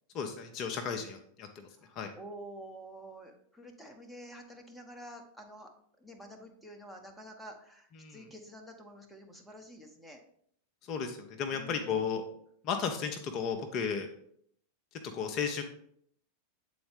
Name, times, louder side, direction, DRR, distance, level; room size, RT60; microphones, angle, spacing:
voice 1, 0.1-2.1 8.0-8.3 10.8-12.2 12.6-14.1 14.9-15.6, left 6 dB, 35° left, 5 dB, 0.6 m, -34 dB
voice 2, 1.8-5.7 6.0-10.2 11.5-12.0, right 1 dB, ahead, 2 dB, 0.9 m, -49 dB
7.9 x 4.1 x 3.4 m, 0.66 s
figure-of-eight pair, 90°, 0 cm